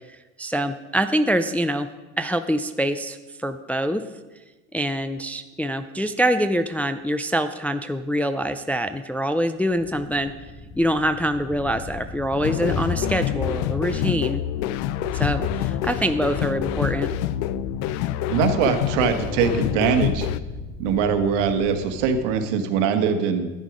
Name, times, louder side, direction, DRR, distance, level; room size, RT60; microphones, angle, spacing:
voice 1, 0.1-1.9 2.2-4.0 4.7-10.3 10.8-14.4 15.1-17.1, equal, 5° left, 8 dB, 0.3 m, -25 dB
Thunder, 9.8-22.4, left 4 dB, 30° left, 1.4 m, -34 dB
sound 1, 12.4-20.4, left 13 dB, 75° left, 0.6 m, -27 dB
voice 2, 18.3-20.3 20.8-23.5, right 6 dB, 75° right, 7 dB, 1.4 m, -22 dB
11.0 x 9.3 x 5.0 m, 1.2 s
supercardioid pair, 115°, 36 cm